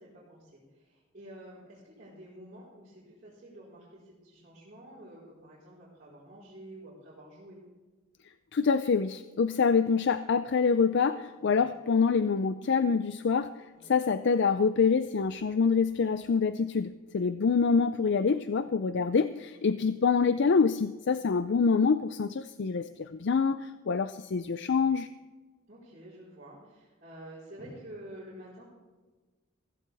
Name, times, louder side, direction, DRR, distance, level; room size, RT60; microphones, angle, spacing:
voice 1, 0.0-7.6 11.5-11.7 13.7-13.9 18.7-18.8 19.5-19.8 25.7-28.7, right 1 dB, 40° right, -10 dB, 4.6 m, -49 dB
voice 2, 8.5-13.5 13.9-25.1, left 5 dB, 55° left, 11 dB, 0.4 m, -26 dB
16.0 x 15.5 x 3.5 m, 1.3 s
head